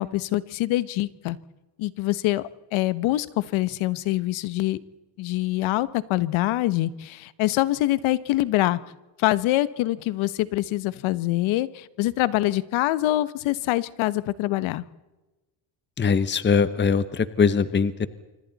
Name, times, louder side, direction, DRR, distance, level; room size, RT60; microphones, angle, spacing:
voice 1, 0.0-1.4 1.8-4.8 5.2-8.8 9.2-14.8, left 16 dB, 80° left, 17 dB, 1.1 m, -25 dB
voice 2, 16.0-18.1, left 5 dB, 25° left, 14 dB, 1.0 m, -21 dB
26.0 x 25.0 x 4.1 m, 1.1 s
cardioid pair, 100°, 47 cm